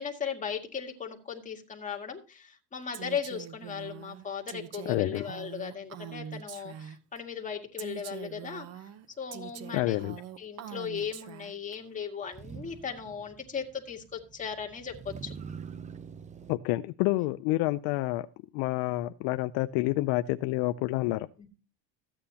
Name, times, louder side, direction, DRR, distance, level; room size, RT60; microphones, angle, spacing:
voice 1, 0.0-8.7 9.2-10.0 10.4-15.3 17.2-17.3 21.4-21.5, left 7 dB, 20° left, 1 dB, 1.9 m, -37 dB
Female speech woman speaking, 2.9-7.2 7.8-11.8, right 10 dB, 40° right, 0.8 m, -43 dB
voice 2, 4.9-5.2 9.7-10.2 16.5-18.3 18.5-21.3, left 18 dB, 70° left, 11 dB, 0.6 m, -28 dB
Motor vehicle (road), 11.0-11.1 12.2-16.6, right 6 dB, 20° right, 0.5 m, -45 dB
14.0 x 8.9 x 2.8 m, 0.32 s
cardioid pair, 130°, 37 cm